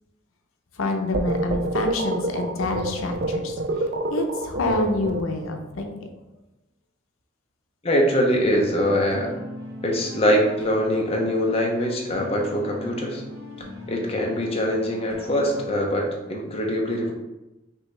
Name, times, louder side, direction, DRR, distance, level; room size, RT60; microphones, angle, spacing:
voice 1, 0.7-6.1, left 2 dB, 80° left, 4 dB, 0.6 m, -27 dB
sound 1, 1.1-5.6, right 2 dB, 50° right, 0.4 m, -27 dB
voice 2, 7.8-9.3 9.8-13.2 13.9-17.1, equal, 30° left, 0 dB, 0.7 m, -23 dB
sound 2, 8.3-15.7, left 1 dB, 85° right, 1.0 m, -39 dB
5.4 x 2.7 x 3.2 m, 1.0 s
head